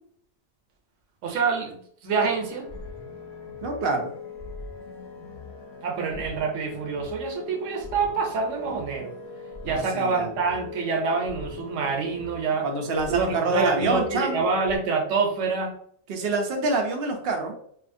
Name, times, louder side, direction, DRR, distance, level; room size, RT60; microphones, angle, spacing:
voice 1, 1.2-2.7 5.8-9.1 9.7-12.7 13.1-15.8, right 4 dB, 90° right, 3 dB, 1.0 m, -27 dB
sound 1, 2.2-14.8, left 5 dB, 60° left, 1.0 m, -40 dB
voice 2, 3.6-4.1 9.6-10.3 12.6-14.4 16.1-17.5, right 3 dB, 60° right, 2 dB, 0.7 m, -26 dB
2.7 x 2.4 x 2.5 m, 0.64 s
omnidirectional pair, 1.2 m